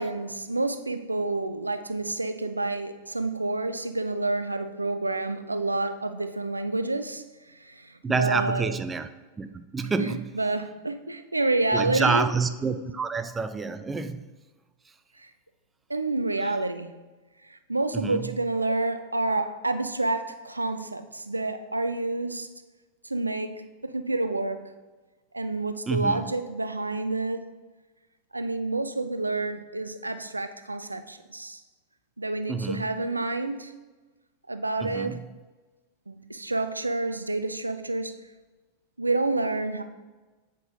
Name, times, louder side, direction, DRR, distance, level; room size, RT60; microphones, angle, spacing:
voice 1, 0.0-8.7 10.0-12.3 15.2-15.3 15.9-17.1 17.5-22.5 23.0-24.7 25.3-27.5 28.3-31.6 32.2-33.8 34.5-35.2 36.1-38.2 39.0-39.8, right 2 dB, 80° right, 10 dB, 0.4 m, -29 dB
voice 2, 8.0-9.1 9.4-10.2 11.7-14.2 16.4-16.5 17.9-18.3 25.9-26.3 32.5-32.9 34.8-35.2, right 4 dB, 15° right, 10 dB, 0.4 m, -28 dB
8.0 x 5.3 x 2.6 m, 1.2 s
figure-of-eight pair, 90°, 0 cm